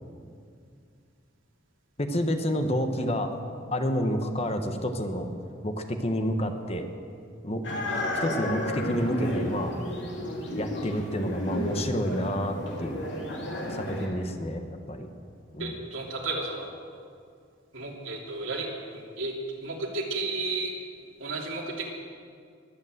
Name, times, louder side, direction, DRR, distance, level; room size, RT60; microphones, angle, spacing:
voice 1, 2.0-3.3 3.7-5.3 5.6-6.9 7.4-9.7 10.6-13.1 13.7-15.1 15.5-15.8, equal, 30° left, 6 dB, 1.1 m, -29 dB
sound 1, 7.6-14.1, left 1 dB, 60° left, 3.0 m, -32 dB
voice 2, 15.6-16.7 17.7-18.7 18.9-19.3 19.6-20.7 21.2-21.9, right 3 dB, 80° right, -1 dB, 3.0 m, -33 dB
22.0 x 8.4 x 7.8 m, 2.3 s
head